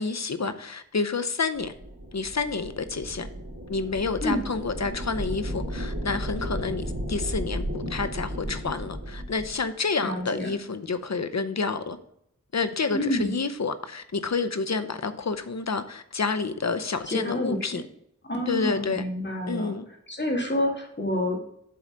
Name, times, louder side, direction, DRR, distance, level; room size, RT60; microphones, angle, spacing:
voice 1, 0.0-1.7 2.1-3.3 3.7-12.0 12.5-17.8 18.5-19.0 19.5-19.9, left 4 dB, 60° left, 0.7 m, -29 dB
sound 1, 1.5-9.6, equal, 60° right, 2.4 m, -34 dB
voice 2, 10.0-10.5 12.9-13.3 17.1-17.8 18.2-19.7 20.1-21.4, left 1 dB, 35° left, 2.0 m, -28 dB
7.8 x 3.9 x 6.4 m
wide cardioid pair, 45°, 30 cm